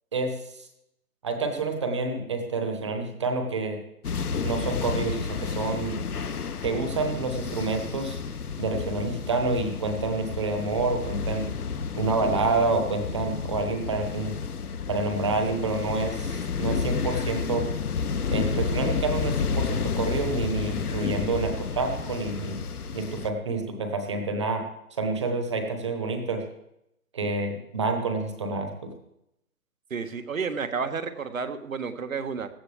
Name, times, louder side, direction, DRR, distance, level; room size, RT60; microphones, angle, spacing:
voice 1, 0.1-0.7 1.2-3.8 4.4-6.0 6.6-8.2 8.6-11.5 12.0-14.3 14.9-17.7 18.3-22.6 22.9-24.6 24.9-26.4 27.1-28.9, right 3 dB, 20° right, 5 dB, 1.2 m, -28 dB
sound 1, 4.0-23.3, left 5 dB, 85° left, 1.1 m, -31 dB
voice 2, 29.9-32.5, right 5 dB, 65° right, 9 dB, 1.5 m, -31 dB
17.0 x 12.5 x 3.5 m, 0.81 s
hypercardioid pair, 170°, 44 cm